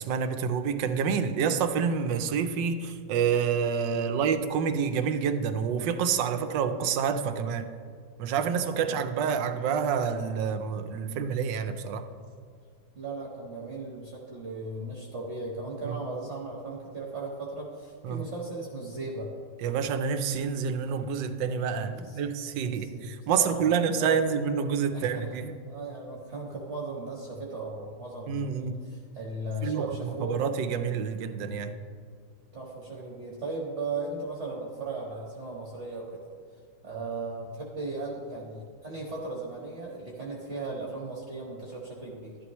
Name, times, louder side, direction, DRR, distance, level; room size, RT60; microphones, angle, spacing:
voice 1, 0.0-7.7 8.2-12.1 15.8-16.0 18.0-18.2 19.6-25.5 28.3-28.9 29.6-31.7, right 6 dB, 80° right, 8 dB, 1.4 m, -28 dB
voice 2, 12.9-19.3 21.9-22.2 22.6-24.2 24.9-25.3 25.7-30.4 32.5-36.2 36.8-42.4, right 2 dB, 40° right, -3 dB, 1.4 m, -37 dB
12.5 x 11.5 x 3.1 m, 2.1 s
omnidirectional pair, 2.0 m